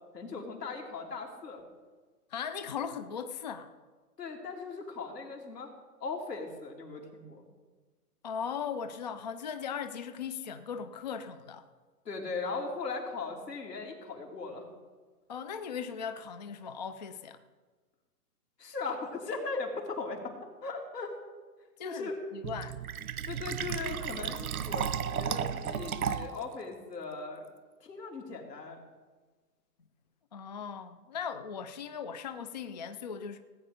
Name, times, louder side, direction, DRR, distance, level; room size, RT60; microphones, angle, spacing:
voice 1, 0.1-1.6 4.2-5.7 6.0-7.4 12.0-14.7 18.6-20.3 20.6-21.1 21.8-22.2 23.3-24.9 25.2-27.4 27.8-28.8, left 4 dB, 80° left, 0 dB, 3.3 m, -38 dB
voice 2, 2.3-3.7 8.2-11.7 15.3-17.4 21.8-22.7 30.3-33.4, left 7 dB, 30° left, 10 dB, 0.4 m, -38 dB
Fill (with liquid), 22.4-26.4, right 8 dB, 60° right, 0.9 m, -34 dB
17.5 x 9.0 x 5.1 m, 1.4 s
hypercardioid pair, 130°, 48 cm